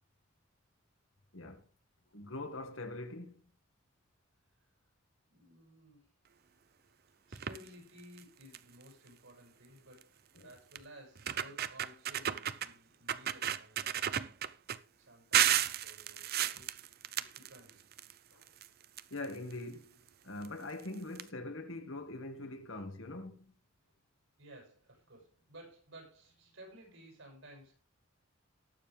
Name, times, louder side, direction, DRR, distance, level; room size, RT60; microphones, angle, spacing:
voice 1, 2.1-3.4 10.4-10.5 18.3-18.4 19.1-20.0 20.2-23.5, left 2 dB, 75° left, 2.0 m, -43 dB
voice 2, 5.3-6.1 7.3-14.1 15.0-16.7 17.1-17.9 22.7-22.8 24.4-27.8, equal, 75° right, 7.4 m, -56 dB
sound 1, 7.3-7.7 8.2-8.3 8.5-8.8 10.0-10.1 10.7-10.8 11.2-12.7 13.1-14.8 15.3-18.1 18.4-19.5 20.4-20.5 20.8-20.9 21.1-21.2, right 10 dB, 50° right, 0.7 m, -33 dB
19.0 x 7.1 x 3.4 m
head